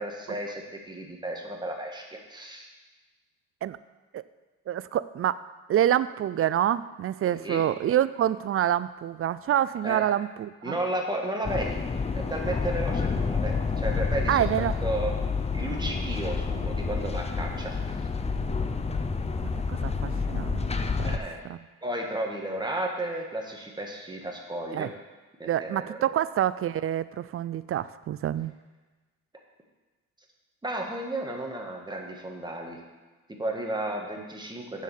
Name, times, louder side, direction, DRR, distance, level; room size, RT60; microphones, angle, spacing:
voice 1, 0.0-2.7 7.3-7.6 9.8-10.1 10.6-11.8 12.1-15.1 15.5-17.8 21.0-21.4 21.8-24.9 25.4-26.1 30.6-32.8 33.3-34.8, right 1 dB, 15° right, 0 dB, 1.8 m, -33 dB
voice 2, 4.7-10.8 14.3-14.7 19.4-20.6 21.0-21.1 21.5-21.6 24.7-24.9 25.4-28.5, right 11 dB, 50° right, 16 dB, 0.4 m, -27 dB
sound 1, 11.4-21.2, left 4 dB, 20° left, 0.7 m, -29 dB
7.4 x 6.5 x 7.3 m, 1.2 s
cardioid pair, 90°, 30 cm